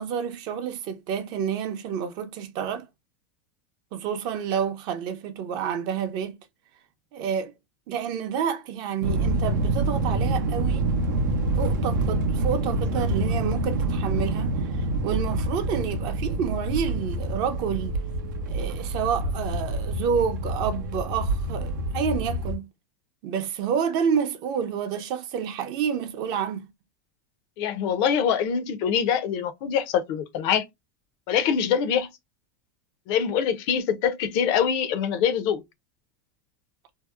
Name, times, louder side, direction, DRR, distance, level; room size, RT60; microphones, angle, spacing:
voice 1, 0.0-2.9 3.9-6.4 7.1-7.5 7.9-10.9 11.6-18.0 18.5-22.7 23.2-26.6, right 7 dB, 45° right, 0.6 m, -29 dB
sound 1, 9.0-22.6, right 2 dB, 90° right, 0.6 m, -27 dB
voice 2, 27.6-30.6 31.3-32.1 33.1-35.6, left 8 dB, 50° left, 0.5 m, -24 dB
2.7 x 2.0 x 2.3 m
supercardioid pair, 135°, 10 cm